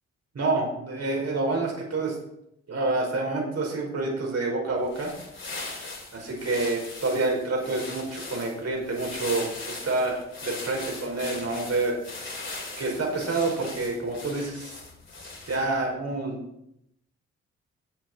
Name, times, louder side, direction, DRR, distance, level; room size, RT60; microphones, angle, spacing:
voice 1, 0.3-2.2 2.7-5.2 6.1-12.0 12.8-14.7 15.5-16.4, right 2 dB, 55° right, 0 dB, 5.5 m, -28 dB
sound 1, 4.8-15.8, left 3 dB, 40° left, 4.7 m, -39 dB
14.0 x 8.2 x 4.7 m, 0.78 s
hypercardioid pair, 45°, 31 cm